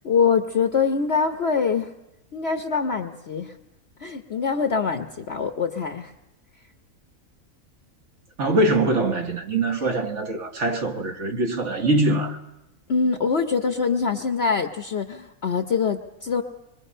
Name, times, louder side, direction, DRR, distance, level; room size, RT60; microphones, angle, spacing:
voice 1, 0.0-1.9 2.3-3.5 4.0-6.1 12.9-16.4, left 5 dB, 50° left, 1.1 m, -24 dB
voice 2, 8.4-12.4, right 2 dB, 50° right, 1.8 m, -23 dB
25.5 x 22.5 x 5.5 m
omnidirectional pair, 1.6 m